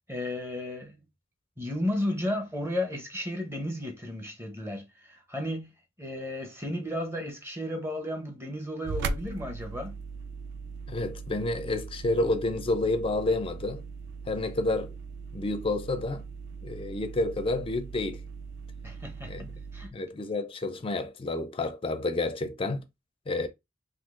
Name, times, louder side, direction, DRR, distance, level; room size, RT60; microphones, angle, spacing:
voice 1, 0.1-1.0 1.6-5.7 6.0-10.0 18.8-19.9, left 1 dB, 10° right, 0.7 m, -33 dB
sound 1, 8.8-19.9, right 4 dB, 60° right, 0.3 m, -39 dB
voice 2, 10.9-13.8 14.3-14.9 15.3-16.2 16.6-18.2 19.3-19.5 19.9-22.8 23.3-23.5, left 2 dB, 25° left, 0.4 m, -29 dB
3.6 x 2.7 x 2.5 m
head